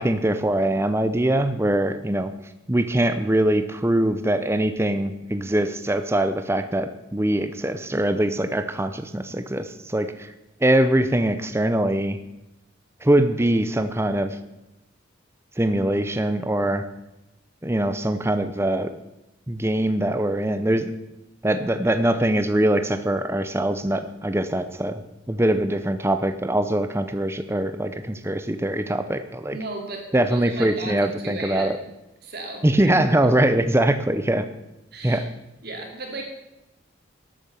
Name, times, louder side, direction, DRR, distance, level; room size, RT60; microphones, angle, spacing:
voice 1, 0.0-2.3 2.7-10.3 10.6-12.2 13.0-14.4 15.6-16.8 17.6-18.9 19.5-20.9 21.4-25.0 25.3-29.6 30.1-31.8 32.6-34.4 35.0-35.3, right 1 dB, 15° right, 10 dB, 0.6 m, -22 dB
voice 2, 29.5-31.8 32.2-32.9 33.2-33.3 34.9-35.2 35.6-36.2, right 2 dB, 50° right, 2 dB, 2.8 m, -35 dB
12.0 x 8.7 x 6.9 m, 0.93 s
head